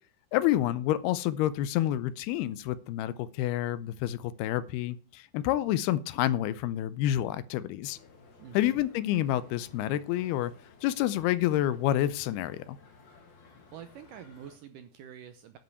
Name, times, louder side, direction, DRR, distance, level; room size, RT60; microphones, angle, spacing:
voice 1, 0.3-8.0 8.5-10.5 10.8-12.8, left 13 dB, 85° left, 2.6 m, -28 dB
sound 1, 7.8-14.6, left 4 dB, 50° left, 1.4 m, -56 dB
voice 2, 8.4-8.8 13.7-15.6, right 9 dB, 75° right, 2.0 m, -47 dB
10.5 x 5.4 x 8.3 m
omnidirectional pair, 4.6 m